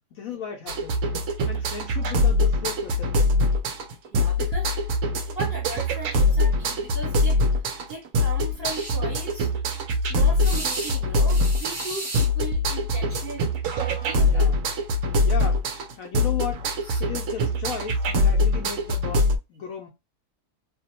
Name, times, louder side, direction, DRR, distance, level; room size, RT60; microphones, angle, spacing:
voice 1, 0.1-1.0 1.5-3.4 14.3-14.7 15.2-15.7 16.0-16.7 17.0-19.9, left 7 dB, 70° left, 0.9 m, -35 dB
sound 1, 0.7-19.4, left 2 dB, 70° right, 0.8 m, -23 dB
voice 2, 4.1-4.7 5.3-7.4 7.9-9.5 10.1-14.5, right 2 dB, 40° right, 1.1 m, -37 dB
sound 2, 8.7-9.0 10.4-11.0 11.3-12.3 13.7-13.8 14.1-14.3 16.8-17.0, right 1 dB, 20° right, 1.0 m, -34 dB
2.7 x 2.1 x 2.8 m
omnidirectional pair, 1.8 m